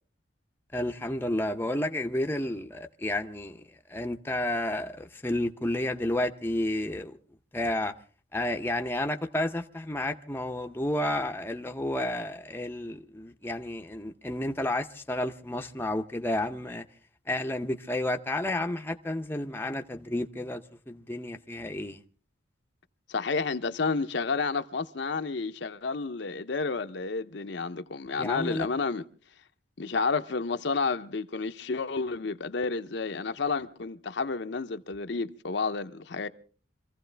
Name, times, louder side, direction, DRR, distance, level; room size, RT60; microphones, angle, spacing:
voice 1, 0.7-3.6 3.9-7.2 7.5-7.9 8.3-16.8 17.3-20.6 20.9-22.0 28.2-28.7, left 1 dB, 10° left, 0.7 m, -31 dB
voice 2, 23.1-29.0 29.8-36.3, left 4 dB, 60° left, 0.7 m, -30 dB
25.5 x 15.5 x 3.4 m
head